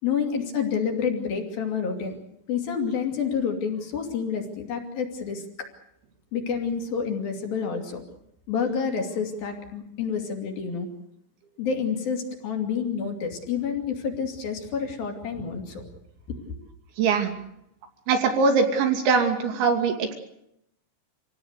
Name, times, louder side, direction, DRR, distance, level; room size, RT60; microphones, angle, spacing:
voice 1, 0.0-2.2 2.5-5.7 6.3-8.0 8.5-10.9 11.6-15.9 16.3-16.6, left 6 dB, 55° left, 3 dB, 4.4 m, -29 dB
voice 2, 17.0-17.4 18.1-20.2, right 4 dB, 75° right, 5 dB, 4.9 m, -22 dB
27.0 x 17.5 x 8.2 m, 0.78 s
omnidirectional pair, 5.4 m